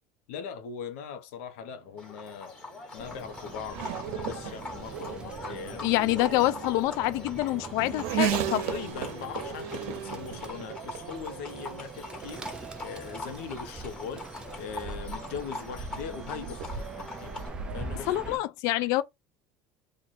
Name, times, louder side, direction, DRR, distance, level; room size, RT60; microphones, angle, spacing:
voice 1, 0.3-2.5 2.9-5.9 7.8-12.4 12.8-14.2 14.5-17.3 17.7-18.4, left 7 dB, 85° left, 1.0 m, -40 dB
Race car auto racing / Accelerating revving vroom, 1.8-18.0, right 10 dB, 70° right, 0.8 m, -38 dB
Livestock farm animals working animals, 2.0-17.5, left 3 dB, 15° left, 1.6 m, -43 dB
Bird, 3.0-18.4, right 2 dB, 15° right, 0.4 m, -43 dB
voice 2, 5.8-8.6 18.1-19.0, left 16 dB, 50° left, 0.3 m, -26 dB
3.3 x 2.5 x 4.2 m
cardioid pair, 165°, 7 cm